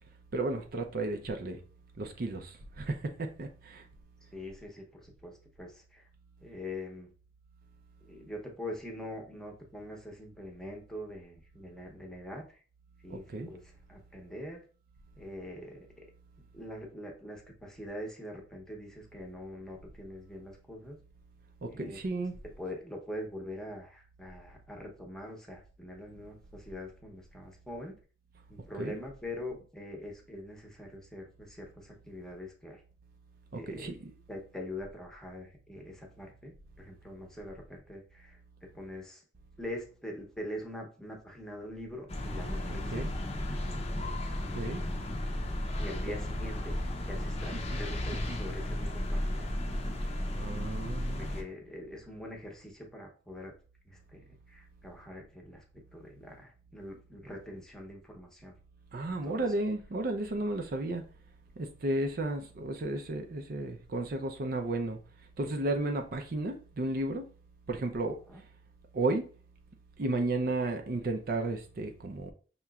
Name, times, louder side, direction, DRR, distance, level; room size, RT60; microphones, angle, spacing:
voice 1, 0.3-1.6 2.0-3.9 13.1-13.5 21.6-22.4 28.8-29.0 33.5-34.1 42.7-43.1 44.5-44.8 47.5-47.6 48.3-48.4 50.3-51.3 58.9-61.0 61.6-65.0 65.4-67.3 67.7-68.2 68.9-69.3 70.0-72.3, right 2 dB, 55° right, 0.5 m, -33 dB
voice 2, 4.3-6.0 6.4-7.1 8.0-12.6 13.0-13.6 13.9-14.6 15.2-15.9 16.5-21.0 21.7-22.0 22.6-28.0 28.5-32.8 33.5-33.9 34.3-38.4 38.7-39.2 39.6-43.1 44.4-45.0 45.8-49.8 50.5-50.8 51.1-53.5 53.9-58.6 59.2-59.5 68.3-68.4, left 1 dB, 5° left, 0.8 m, -44 dB
sound 1, 42.1-51.4, left 1 dB, 35° left, 0.6 m, -34 dB
5.5 x 2.9 x 2.3 m
head